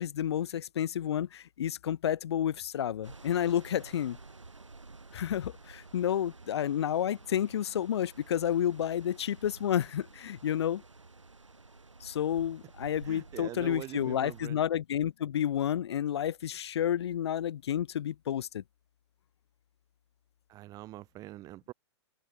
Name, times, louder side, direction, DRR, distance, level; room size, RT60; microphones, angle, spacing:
voice 1, 0.0-4.2 5.1-10.8 12.0-18.6, left 10 dB, 60° left, 0.7 m, -30 dB
sound 1, 3.0-14.5, right 3 dB, 85° right, 5.3 m, -51 dB
voice 2, 13.0-14.6 20.5-21.7, right 16 dB, 25° right, 0.5 m, -43 dB
figure-of-eight pair, 110°, 15 cm